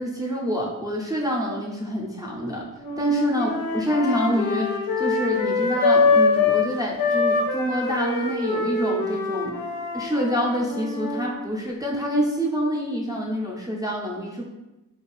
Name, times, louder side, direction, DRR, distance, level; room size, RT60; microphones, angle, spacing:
voice 1, 0.0-2.7 3.0-3.5 3.7-9.6 9.9-14.5, equal, 10° right, -4 dB, 0.4 m, -26 dB
sound 1, 2.8-6.7 7.0-11.4, left 4 dB, 85° left, 0.5 m, -24 dB
2.5 x 2.3 x 3.1 m, 1.0 s
cardioid pair, 70°, 34 cm